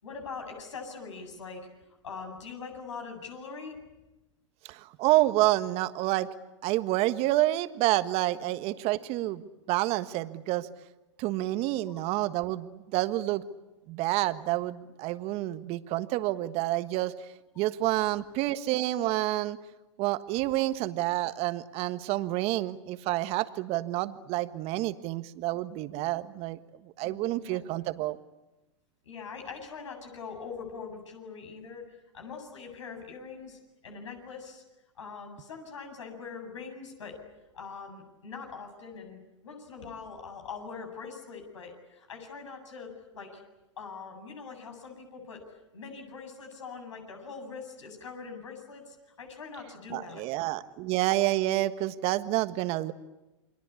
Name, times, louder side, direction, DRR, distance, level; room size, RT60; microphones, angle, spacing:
voice 1, 0.0-1.7 2.0-3.8 11.9-12.0 18.2-18.3 20.4-20.5 27.0-27.7 29.0-34.6 35.0-37.2 37.5-43.4 43.8-45.5 45.7-50.3, left 5 dB, 80° left, 4 dB, 7.9 m, -43 dB
voice 2, 4.7-6.3 6.6-10.7 11.2-13.4 13.9-17.1 17.6-19.6 20.0-26.6 27.0-28.2 49.9-52.9, right 16 dB, 40° right, 11 dB, 1.4 m, -28 dB
29.0 x 23.5 x 8.4 m, 1.0 s
hypercardioid pair, 115°, 16 cm